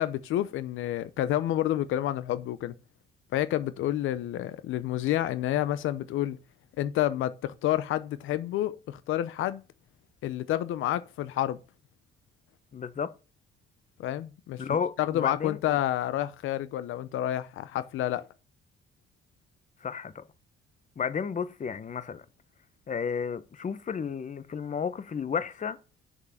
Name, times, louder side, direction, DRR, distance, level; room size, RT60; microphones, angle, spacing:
voice 1, 0.0-2.7 3.3-6.4 6.8-9.6 10.2-11.6 14.0-18.2, left 13 dB, 85° left, 0.8 m, -29 dB
voice 2, 12.7-13.1 14.6-15.8 19.8-20.2 21.0-22.2 22.9-25.8, left 6 dB, 40° left, 1.1 m, -32 dB
7.4 x 6.7 x 7.1 m
cardioid pair, 90°, 20 cm